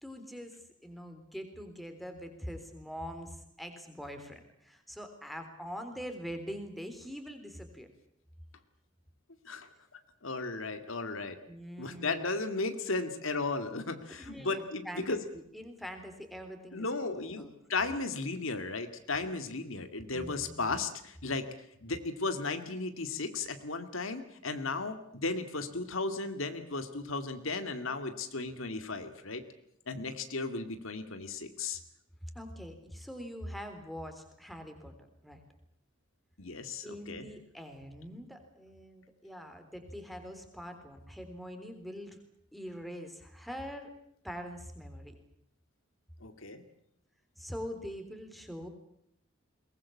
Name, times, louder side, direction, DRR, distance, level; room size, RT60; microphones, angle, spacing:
voice 1, 0.0-7.9 11.5-12.3 14.1-17.5 20.1-20.7 32.3-35.4 36.8-42.2 42.5-43.9 44.2-45.1 47.4-48.7, equal, ahead, 6 dB, 3.6 m, -44 dB
voice 2, 10.2-11.4 11.8-15.2 16.7-21.5 21.8-29.4 29.9-31.8 36.4-37.3 46.2-46.6, left 3 dB, 75° left, 9 dB, 2.3 m, -35 dB
22.5 x 20.5 x 8.6 m, 0.74 s
head